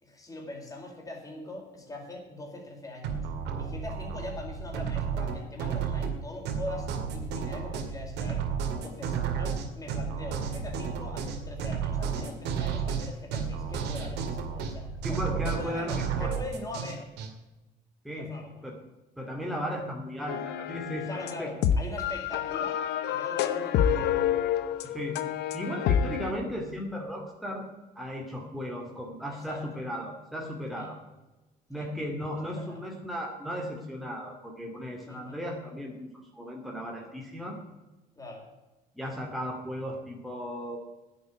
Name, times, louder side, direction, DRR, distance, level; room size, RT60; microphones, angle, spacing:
voice 1, 0.0-3.2 3.6-8.4 8.8-15.2 15.4-17.1 18.2-18.7 21.1-24.4 29.3-29.8 30.7-30.9 31.7-31.9 32.4-32.8 35.1-35.4 38.2-38.5, left 2 dB, 20° left, 0 dB, 4.5 m, -42 dB
sound 1, 3.0-17.3, right 6 dB, 85° right, 2.3 m, -32 dB
voice 2, 15.0-16.3 18.0-18.8 19.2-21.5 24.8-27.7 28.0-31.0 31.7-37.6 38.9-40.8, equal, ahead, -1 dB, 2.3 m, -36 dB
sound 2, 20.3-26.3, left 9 dB, 80° left, 1.0 m, -28 dB
10.5 x 8.5 x 8.9 m, 1.1 s
cardioid pair, 110°, 17 cm